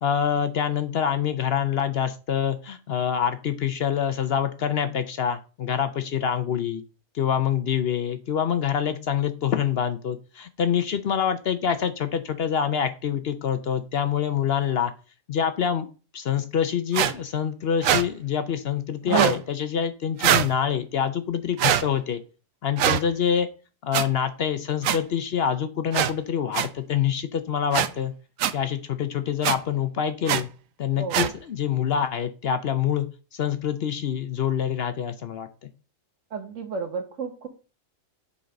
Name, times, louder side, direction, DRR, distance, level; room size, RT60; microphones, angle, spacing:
voice 1, 0.0-6.8 7.1-14.9 15.3-15.9 16.1-22.2 22.6-23.5 23.8-28.1 28.5-30.5 30.8-33.1 33.3-35.5, left 8 dB, 60° left, 10 dB, 0.8 m, -26 dB
sound 1, 16.9-17.1 17.8-18.0 19.1-19.4 20.2-20.5 21.6-21.8 22.8-23.0 23.9-24.0 24.8-25.0 25.9-26.1 26.5-26.7 27.7-27.9 28.4-28.5 29.4-29.6 30.3-30.4 31.1-31.3, right 10 dB, 90° right, 1.0 m, -21 dB
voice 2, 31.0-31.3 36.3-37.5, right 4 dB, 70° right, 6 dB, 1.6 m, -33 dB
6.9 x 3.9 x 5.2 m, 0.35 s
omnidirectional pair, 1.3 m